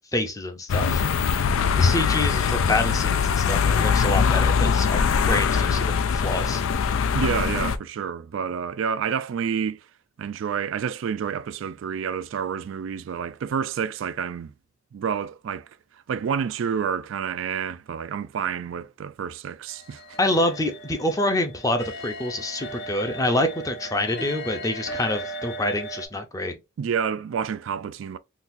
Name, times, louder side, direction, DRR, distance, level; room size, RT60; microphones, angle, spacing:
voice 1, 0.1-1.0 1.7-6.6 20.2-26.5, left 1 dB, 15° left, 0.5 m, -26 dB
sound 1, 0.7-7.8, left 6 dB, 90° left, 0.4 m, -22 dB
voice 2, 7.1-9.8 10.2-14.5 14.9-15.7 16.1-20.0 26.8-28.2, right 7 dB, 70° right, 0.3 m, -29 dB
sound 2, 19.7-26.1, right 1 dB, 55° left, 0.7 m, -37 dB
3.9 x 2.3 x 2.5 m
head